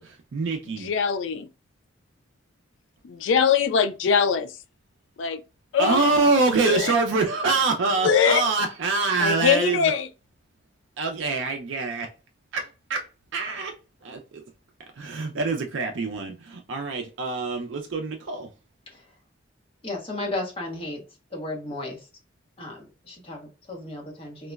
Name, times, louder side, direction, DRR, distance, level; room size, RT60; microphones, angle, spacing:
voice 1, 0.0-0.9 5.8-9.9 11.0-12.1 12.5-13.1 13.3-13.7 14.0-14.4 15.0-18.5, right 3 dB, 70° right, 0.4 m, -25 dB
voice 2, 0.8-1.5 3.0-4.6 5.2-5.4 5.7-6.1 6.6-6.9 8.0-8.5 9.2-10.1, left 6 dB, 70° left, 0.3 m, -22 dB
voice 3, 19.8-21.0 21.3-22.0 22.6-24.5, left 2 dB, 30° left, 0.9 m, -34 dB
3.7 x 2.0 x 2.2 m
head